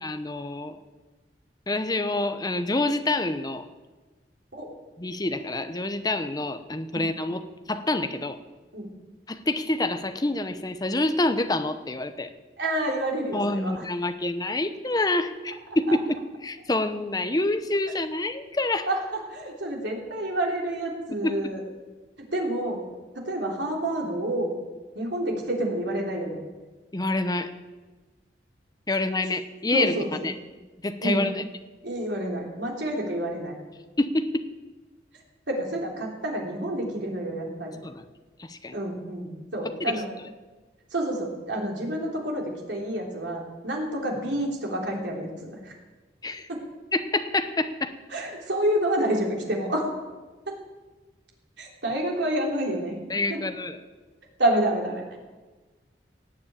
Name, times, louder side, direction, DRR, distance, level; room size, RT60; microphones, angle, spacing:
voice 1, 0.0-0.8 1.7-3.6 5.0-8.4 9.3-12.3 13.3-18.9 21.2-21.3 26.9-27.5 28.9-29.9 30.2-30.3 30.8-31.4 34.0-34.5 37.8-38.0 38.4-38.8 39.8-39.9 46.2-46.5 46.9-47.9 53.1-53.8, left 2 dB, 20° left, 9 dB, 0.8 m, -27 dB
voice 2, 12.6-13.8 15.9-16.0 18.9-21.6 22.3-22.8 23.2-24.6 25.0-26.4 29.7-30.3 31.0-31.3 31.8-33.5 35.5-37.8 38.7-40.1 40.9-45.7 46.5-46.6 48.1-49.9 50.5-50.6 51.6-53.0 53.3-53.4 54.4-55.0, right 1 dB, 85° right, -1 dB, 3.4 m, -28 dB
17.5 x 7.3 x 8.9 m, 1.3 s
head